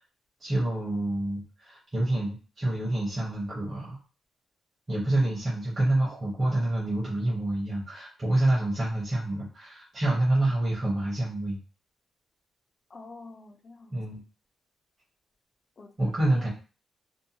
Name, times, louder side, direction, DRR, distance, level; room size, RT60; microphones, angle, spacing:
voice 1, 0.4-4.0 4.9-11.6 13.9-14.2 16.0-16.5, right 1 dB, 25° right, 0.8 m, -27 dB
voice 2, 12.9-14.0 15.8-16.0 16.3-16.5, left 3 dB, 30° left, 0.4 m, -47 dB
2.6 x 2.1 x 2.7 m
wide cardioid pair, 160°, 0 cm